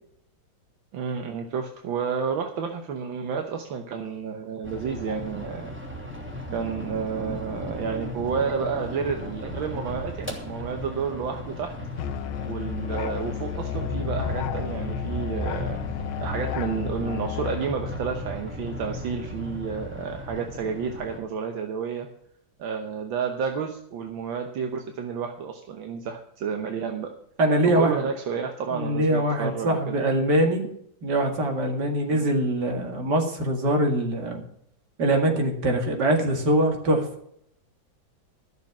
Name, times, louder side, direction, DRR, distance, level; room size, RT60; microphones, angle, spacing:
voice 1, 0.9-5.7 6.5-11.7 12.5-15.8 16.2-22.1 22.6-27.1 27.8-29.9 32.1-32.2, right 6 dB, 75° right, 4 dB, 1.8 m, -30 dB
sound 1, 4.6-21.2, left 1 dB, 5° right, 2.6 m, -35 dB
Musical instrument, 12.0-17.7, left 12 dB, 70° left, 1.2 m, -32 dB
voice 2, 27.4-28.1 28.7-30.7 31.0-34.4 35.0-37.1, right 1 dB, 55° right, 3 dB, 2.6 m, -23 dB
13.5 x 6.8 x 7.3 m, 0.72 s
omnidirectional pair, 2.2 m